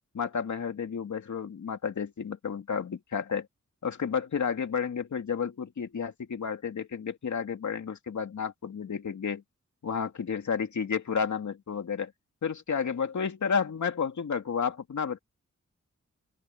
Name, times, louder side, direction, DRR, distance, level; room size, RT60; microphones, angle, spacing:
voice 1, 0.1-3.5 3.8-9.4 9.8-12.1 12.4-15.2, left 6 dB, 75° left, 2.6 m, -31 dB
open air
wide cardioid pair, 90°, 30 cm